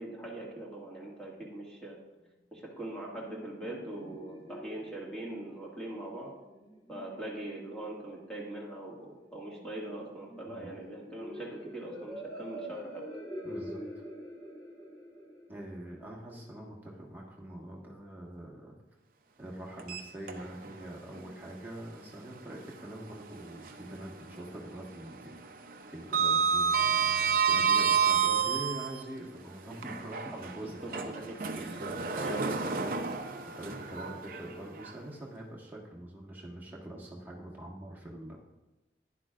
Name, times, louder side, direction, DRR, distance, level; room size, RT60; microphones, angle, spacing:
voice 1, 0.0-2.0 2.5-6.3 6.9-13.1 30.8-31.8 32.1-32.9, right 1 dB, 5° left, -4 dB, 1.9 m, -42 dB
sound 1, 3.1-16.7, equal, 20° left, 1.3 m, -46 dB
voice 2, 13.4-13.8 15.5-18.8 19.4-25.4 25.9-38.4, right 1 dB, 10° right, -3 dB, 1.5 m, -44 dB
Sliding door, 19.8-20.8 21.2-21.3 23.0-24.0 24.3-24.7 24.9-29.0 29.7-34.9, right 6 dB, 50° right, 0.6 m, -30 dB
11.5 x 10.5 x 2.5 m, 1.1 s
head